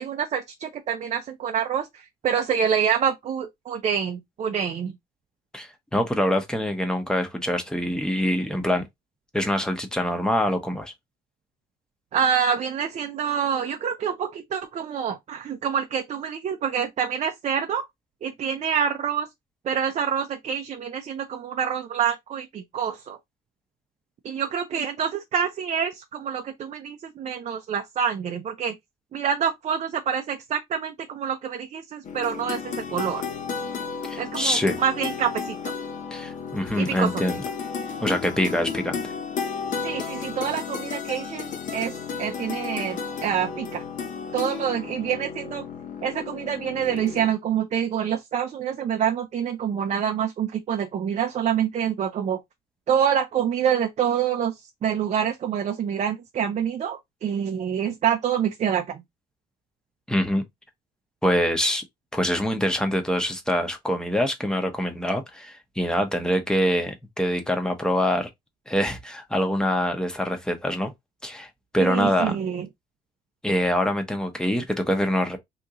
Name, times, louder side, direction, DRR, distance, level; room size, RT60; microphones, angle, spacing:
voice 1, 0.0-5.0 12.1-17.8 18.2-19.3 19.6-23.2 24.2-28.7 29.1-33.2 34.2-35.7 36.8-37.2 39.8-43.8 44.3-45.6 46.0-52.4 52.9-59.0 71.8-72.7, right 8 dB, 40° right, 0.5 m, -26 dB
voice 2, 5.5-8.9 9.3-10.9 34.1-34.8 36.1-37.4 38.0-39.0 60.1-60.4 61.2-61.8 62.1-68.3 68.7-70.9 71.2-72.3 73.4-75.4, equal, 5° left, 0.9 m, -25 dB
sound 1, 32.0-47.3, left 6 dB, 50° left, 0.8 m, -33 dB
2.9 x 2.6 x 3.6 m
cardioid pair, 110°, 17 cm